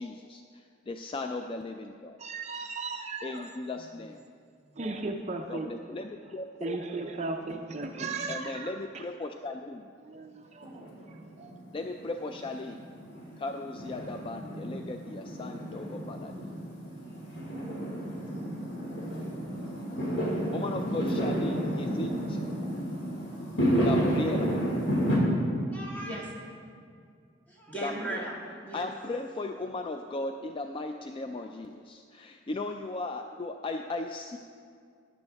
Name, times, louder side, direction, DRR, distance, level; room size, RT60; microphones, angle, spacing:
voice 1, 0.0-2.2 3.2-4.2 5.5-6.8 8.3-9.9 11.7-12.8 13.4-16.5 20.5-22.4 23.7-24.5 27.8-28.3 28.7-34.4, left 2 dB, 30° left, 5 dB, 0.3 m, -37 dB
voice 2, 2.2-3.5 4.8-5.7 6.6-9.0 10.0-11.5, right 3 dB, 35° right, 3 dB, 0.6 m, -36 dB
Fireworks, 10.6-25.2, equal, 65° left, 2.4 m, -31 dB
voice 3, 25.7-26.3 27.5-28.9, right 1 dB, 10° left, -4 dB, 2.0 m, -37 dB
12.0 x 11.0 x 3.4 m, 2.3 s
head